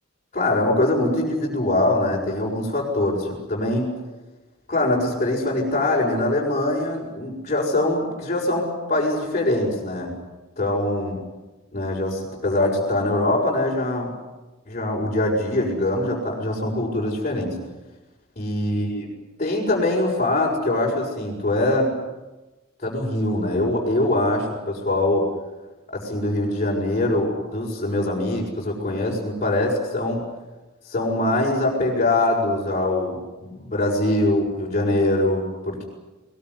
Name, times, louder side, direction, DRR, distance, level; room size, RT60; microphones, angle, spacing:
voice 1, 0.3-3.9 4.7-10.1 10.6-11.2 11.7-14.1 14.7-17.5 18.4-19.1 19.4-21.9 22.8-25.3 25.9-30.2 30.9-35.8, left 1 dB, 35° left, -5 dB, 6.4 m, -23 dB
22.0 x 21.5 x 9.8 m, 1.1 s
head